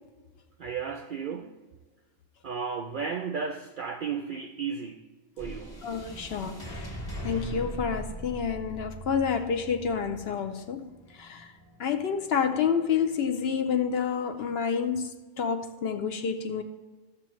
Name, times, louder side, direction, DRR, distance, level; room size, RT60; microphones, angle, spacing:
voice 1, 0.6-1.6 2.4-5.1 5.4-5.8, right 6 dB, 65° right, 0.5 m, -34 dB
sound 1, 5.4-13.8, right 1 dB, 20° left, 1.3 m, -41 dB
voice 2, 5.8-6.9 7.2-10.9 11.1-11.5 11.8-16.6, left 6 dB, 60° left, 0.7 m, -29 dB
14.0 x 6.8 x 3.1 m
omnidirectional pair, 1.3 m